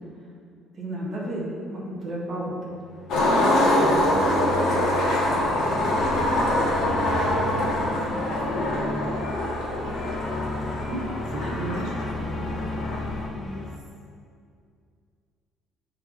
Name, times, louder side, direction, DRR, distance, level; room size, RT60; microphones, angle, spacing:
voice 1, 0.8-2.8 10.9-11.0 11.4-11.5, right 1 dB, 25° right, -6 dB, 1.7 m, -32 dB
sound 1, 2.7-13.8, left 1 dB, 15° left, 0.5 m, -35 dB
Skateboard, 3.1-13.3, left 1 dB, 60° left, 1.5 m, -24 dB
voice 2, 3.8-5.0 5.4-5.7 7.5-8.2 8.5-10.0 11.3-13.7, right 2 dB, 85° right, -2 dB, 1.0 m, -39 dB
9.6 x 4.5 x 4.2 m, 2.3 s
cardioid pair, 180°, 0 cm